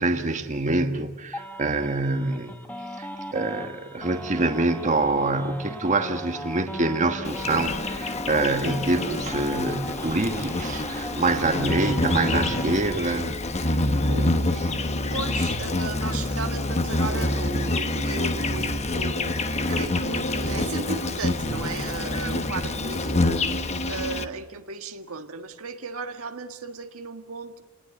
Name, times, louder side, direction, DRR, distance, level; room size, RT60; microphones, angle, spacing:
voice 1, 0.0-2.6 3.0-13.3 13.6-13.7 14.1-14.7, right 2 dB, 35° right, 6 dB, 1.4 m, -26 dB
sound 1, 1.3-13.0, equal, 10° left, 1.8 m, -38 dB
Insect, 7.2-24.2, left 2 dB, 30° left, 1.1 m, -27 dB
sound 2, 11.9-24.3, right 1 dB, 80° left, 5.3 m, -37 dB
voice 2, 15.1-19.4 19.7-23.4 23.9-27.6, right 3 dB, 75° right, 6 dB, 1.6 m, -35 dB
29.0 x 19.5 x 8.3 m, 1.1 s
head